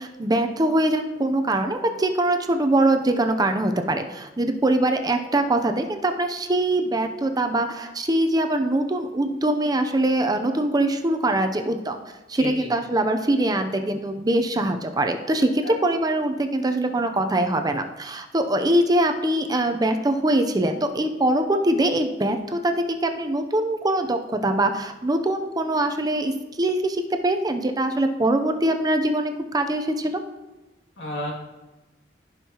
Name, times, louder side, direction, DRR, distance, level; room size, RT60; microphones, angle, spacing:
voice 1, 0.0-12.0 12.3-26.3 26.6-30.2, right 1 dB, 20° right, 6 dB, 0.6 m, -23 dB
voice 2, 12.4-12.7 15.6-15.7 31.0-31.3, left 1 dB, 85° left, -3 dB, 2.3 m, -31 dB
15.5 x 5.5 x 2.9 m, 1.1 s
head